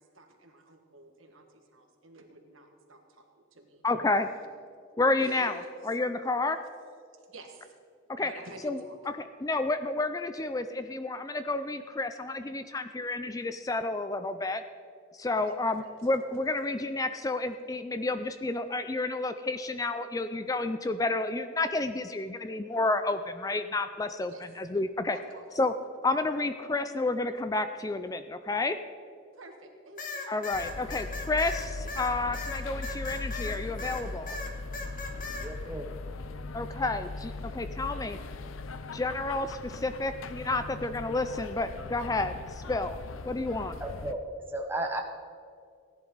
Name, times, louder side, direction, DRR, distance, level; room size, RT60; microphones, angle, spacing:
voice 1, 0.0-3.2 3.5-3.8 5.2-5.6 7.3-7.7 8.2-9.0 15.5-15.9 24.3-24.4 25.1-25.5 29.3-30.1, right 2 dB, 75° right, 3 dB, 1.7 m, -49 dB
voice 2, 3.8-4.3 5.0-6.6 8.1-8.3 8.6-8.8 9.2-14.6 15.1-25.2 25.6-25.7 26.0-28.8 30.3-34.4 36.5-38.2 38.9-43.0 43.3-43.7, left 2 dB, 15° left, 10 dB, 0.3 m, -30 dB
sound 1, 30.0-34.0 34.3-35.5, left 3 dB, 40° left, 1.3 m, -37 dB
sound 2, 30.5-44.1, left 3 dB, 80° left, 0.6 m, -39 dB
voice 3, 35.4-36.0 43.8-44.2 44.5-45.0, right 1 dB, 10° right, 2 dB, 0.9 m, -34 dB
17.0 x 11.0 x 4.0 m, 2.3 s
head